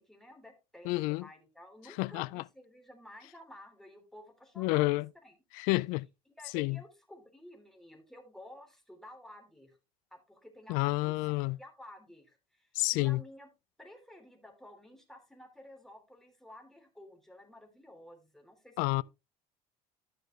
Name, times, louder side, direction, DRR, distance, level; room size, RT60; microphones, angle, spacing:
voice 1, 0.0-4.8 5.2-5.3 6.4-9.8 10.1-11.3 11.6-13.5 13.8-19.0, left 1 dB, 5° left, 3.2 m, -53 dB
voice 2, 0.8-1.3 2.0-2.4 4.6-5.1 5.5-6.1 6.5-6.8 10.7-11.6 12.7-13.2 18.8-19.0, left 22 dB, 80° left, 0.4 m, -29 dB
13.0 x 6.7 x 3.2 m
cardioid pair, 115°, 14 cm